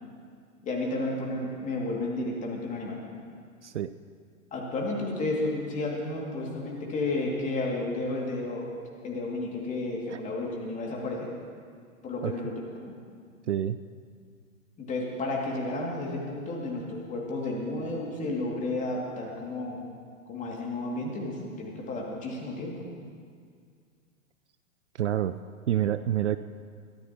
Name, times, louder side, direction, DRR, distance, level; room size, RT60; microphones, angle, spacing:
voice 1, 0.6-3.0 4.5-8.7 9.0-11.3 12.0-12.7 14.8-19.8 20.3-22.9, left 2 dB, 20° left, -2 dB, 2.6 m, -32 dB
voice 2, 13.5-13.8 25.0-25.3 25.7-26.4, right 11 dB, 60° right, 12 dB, 0.5 m, -27 dB
21.5 x 14.0 x 3.0 m, 2.1 s
figure-of-eight pair, 110°, 41 cm